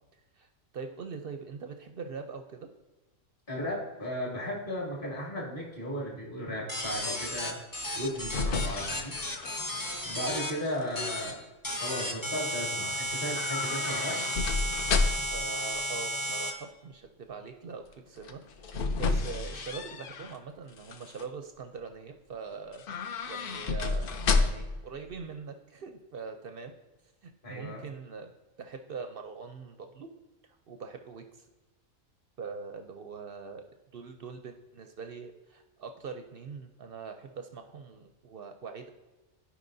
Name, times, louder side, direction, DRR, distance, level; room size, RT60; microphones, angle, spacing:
voice 1, 0.7-2.7 10.5-10.7 15.0-22.8 23.3-26.7 27.2-28.3 28.6-30.1 30.7-31.5 32.4-38.9, right 5 dB, 60° right, 6 dB, 0.6 m, -43 dB
voice 2, 3.5-7.6 7.9-9.1 10.0-11.4 11.8-14.2 27.4-27.8, equal, 40° left, -4 dB, 2.2 m, -35 dB
sound 1, 6.7-10.5 10.9-11.3 11.6-16.5, equal, 20° left, 0.7 m, -33 dB
sound 2, 7.9-10.2 10.6-11.1 13.3-15.4 18.2-20.4 20.8-21.3 22.7-24.8 25.1-25.2, left 4 dB, 55° left, 0.6 m, -31 dB
14.5 x 4.8 x 2.6 m, 1.1 s
omnidirectional pair, 1.4 m